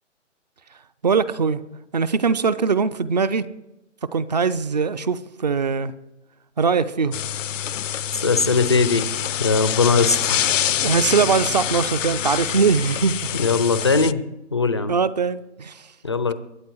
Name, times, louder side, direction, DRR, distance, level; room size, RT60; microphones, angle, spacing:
voice 1, 1.0-1.6 1.9-3.5 4.1-5.9 6.6-7.2 10.8-13.3 14.9-15.9, right 5 dB, 35° right, 17 dB, 0.5 m, -21 dB
sound 1, 7.1-14.1, left 10 dB, 80° left, 0.5 m, -26 dB
voice 2, 8.2-9.0 9.4-10.5 13.3-14.2 14.5-14.9 16.0-16.3, left 4 dB, 25° left, 13 dB, 0.4 m, -20 dB
22.5 x 8.2 x 4.6 m, 0.92 s
hypercardioid pair, 155°, 37 cm